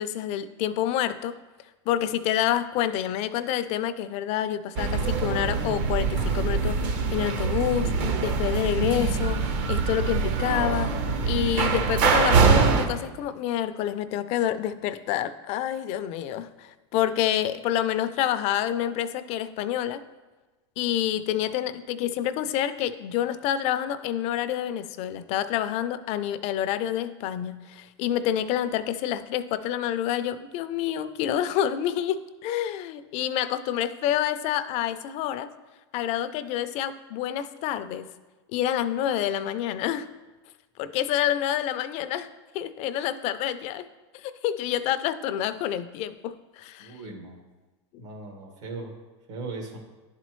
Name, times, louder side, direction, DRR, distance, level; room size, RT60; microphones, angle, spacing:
voice 1, 0.0-1.3 1.9-7.9 8.2-10.9 11.2-20.0 20.8-35.5 35.9-38.1 38.5-40.1 40.8-42.3 42.5-43.9 44.1-47.0, left 11 dB, 45° left, 12 dB, 0.4 m, -28 dB
sound 1, 4.8-12.9, right 5 dB, 50° right, 0.8 m, -24 dB
voice 2, 46.8-47.4 48.0-48.9 49.3-49.8, right 3 dB, 75° right, 1 dB, 1.8 m, -38 dB
10.5 x 4.2 x 3.1 m, 1.2 s
supercardioid pair, 120°, 15 cm